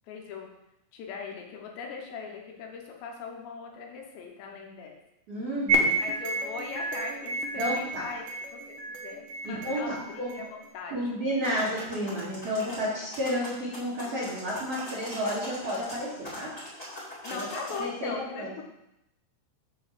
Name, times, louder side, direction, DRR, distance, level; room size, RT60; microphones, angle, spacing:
voice 1, 0.1-0.5 0.9-5.0 5.9-8.3 8.5-11.6 17.2-18.6, left 5 dB, 75° left, 1 dB, 2.9 m, -40 dB
voice 2, 5.3-5.9 7.6-8.0 9.4-10.5 10.9-16.5 17.3-17.5 17.8-18.1 18.4-18.5, equal, 45° right, -9 dB, 2.1 m, -31 dB
sound 1, 5.7-10.7, right 2 dB, 75° right, 2.2 m, -31 dB
sound 2, 11.4-17.8, left 1 dB, 20° left, 1.1 m, -42 dB
7.2 x 4.6 x 6.8 m, 0.86 s
omnidirectional pair, 5.7 m